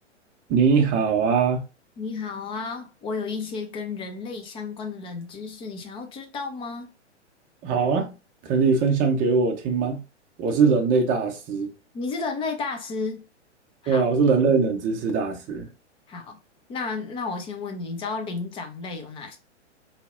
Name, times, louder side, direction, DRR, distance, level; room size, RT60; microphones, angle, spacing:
voice 1, 0.5-1.6 7.6-8.1 8.4-10.0 10.4-11.7 13.9-15.7, right 5 dB, 20° right, 0.7 m, -21 dB
voice 2, 2.0-6.9 11.9-13.2 13.8-14.0 16.1-16.4 16.7-19.4, left 4 dB, 15° left, 0.7 m, -32 dB
4.2 x 3.2 x 2.6 m
figure-of-eight pair, 110°, 36 cm